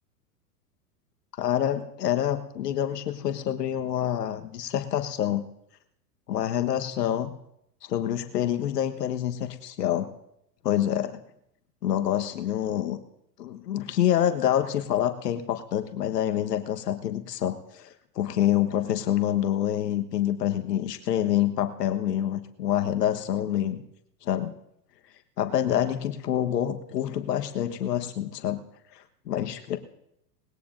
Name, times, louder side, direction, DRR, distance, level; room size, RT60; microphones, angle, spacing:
voice 1, 1.4-5.4 6.3-7.3 7.8-10.1 10.6-11.2 11.8-13.0 13.4-23.9 24.2-24.6 25.4-28.6 28.9-29.8, left 11 dB, 80° left, 7 dB, 1.4 m, -27 dB
20.0 x 16.5 x 2.6 m, 0.77 s
hypercardioid pair, 115°, 48 cm